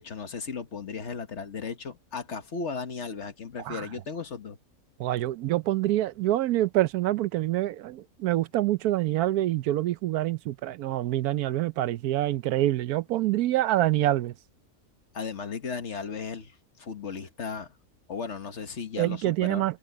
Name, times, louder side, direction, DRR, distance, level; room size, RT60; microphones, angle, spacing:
voice 1, 0.0-4.6 15.1-17.8 18.1-19.7, left 5 dB, 50° left, 1.5 m, -36 dB
voice 2, 5.0-14.3 19.0-19.8, right 14 dB, 80° right, 1.1 m, -26 dB
omnidirectional pair, 1.6 m